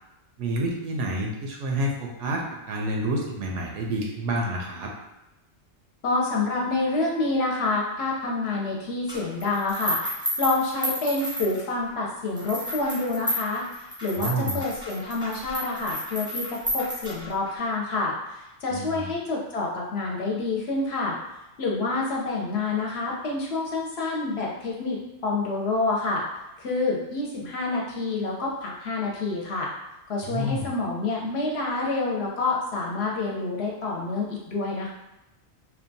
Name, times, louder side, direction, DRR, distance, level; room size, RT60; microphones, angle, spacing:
voice 1, 0.4-4.9 14.2-14.6 18.7-19.1 30.2-30.7, right 1 dB, 85° right, 0 dB, 0.9 m, -29 dB
voice 2, 6.0-10.0 10.4-21.2 21.6-26.2 26.6-29.7 30.1-34.9, left 3 dB, 65° left, -2 dB, 0.8 m, -28 dB
sound 1, 9.1-11.9 12.4-17.5, equal, 5° right, 0.4 m, -32 dB
2.8 x 2.2 x 2.6 m, 0.95 s
omnidirectional pair, 1.2 m